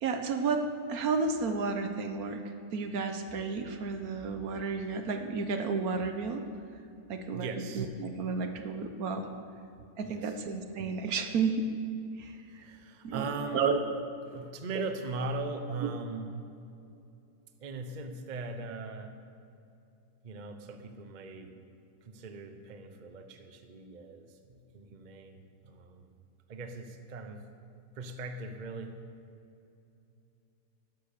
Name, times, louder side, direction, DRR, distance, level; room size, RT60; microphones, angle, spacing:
voice 1, 0.0-6.4 7.1-9.3 10.0-11.6 12.2-12.7 13.0-13.3 13.5-13.8 15.8-15.9, right 4 dB, 65° right, 7 dB, 1.3 m, -32 dB
voice 2, 7.3-7.9 10.0-10.3 12.6-13.7 14.3-16.3 17.6-19.2 20.2-21.5 22.0-26.0 26.5-27.5 28.0-29.0, right 3 dB, 35° right, 7 dB, 0.8 m, -39 dB
12.0 x 10.5 x 6.7 m, 2.7 s
omnidirectional pair, 1.8 m